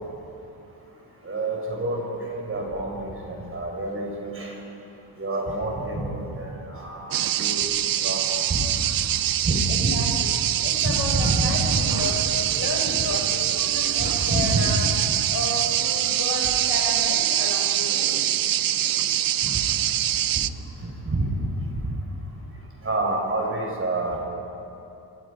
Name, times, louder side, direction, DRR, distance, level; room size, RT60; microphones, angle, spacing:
voice 1, 1.2-2.0 2.3-4.5 5.2-7.6 8.0-8.2 8.5-8.6 9.4-9.9 10.8-11.9 14.0-14.6 21.0-21.2 22.8-24.2, right 2 dB, 30° right, 0 dB, 5.0 m, -27 dB
sound 1, 7.1-20.5, right 12 dB, 55° right, 0.5 m, -24 dB
voice 2, 9.7-10.3 10.6-12.2 12.5-14.9 15.3-18.2, left 2 dB, 55° left, 0 dB, 5.3 m, -32 dB
28.5 x 23.5 x 5.1 m, 2.8 s
wide cardioid pair, 155°, 42 cm